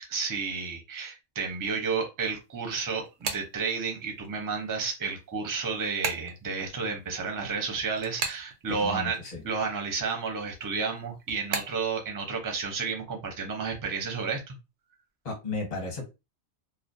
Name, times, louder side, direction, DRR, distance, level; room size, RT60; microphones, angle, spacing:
voice 1, 0.1-9.2 9.4-14.4, right 5 dB, 25° right, 2 dB, 0.4 m, -31 dB
sound 1, 2.4-4.3 4.7-9.4 9.6-11.9, right 5 dB, 90° right, 0.9 m, -36 dB
voice 2, 8.7-9.4 15.2-16.0, left 3 dB, 40° left, 1 dB, 0.9 m, -34 dB
2.4 x 2.0 x 2.6 m, 0.25 s
omnidirectional pair, 1.2 m